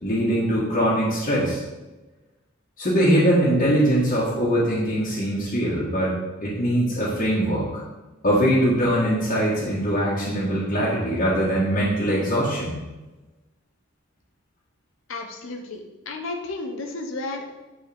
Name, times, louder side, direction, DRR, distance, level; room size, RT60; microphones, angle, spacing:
voice 1, 0.0-1.6 2.8-6.1 6.4-7.8 8.2-12.7, equal, 40° left, -9 dB, 1.4 m, -22 dB
voice 2, 15.1-17.5, left 2 dB, 75° left, 3 dB, 0.8 m, -33 dB
8.3 x 4.2 x 3.4 m, 1.1 s
head